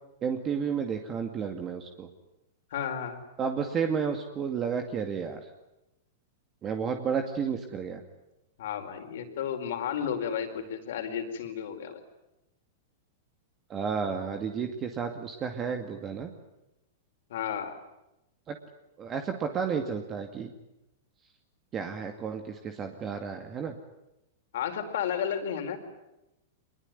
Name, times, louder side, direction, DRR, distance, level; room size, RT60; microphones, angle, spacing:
voice 1, 0.2-2.1 3.4-5.5 6.6-8.0 13.7-16.3 18.5-18.6 19.0-20.5 21.7-23.7, right 6 dB, 25° right, 6 dB, 2.3 m, -32 dB
voice 2, 2.7-3.2 8.6-12.0 17.3-17.8 24.5-25.8, left 8 dB, 70° left, 6 dB, 4.7 m, -32 dB
24.5 x 21.5 x 9.6 m, 0.91 s
hypercardioid pair, 135°, 0 cm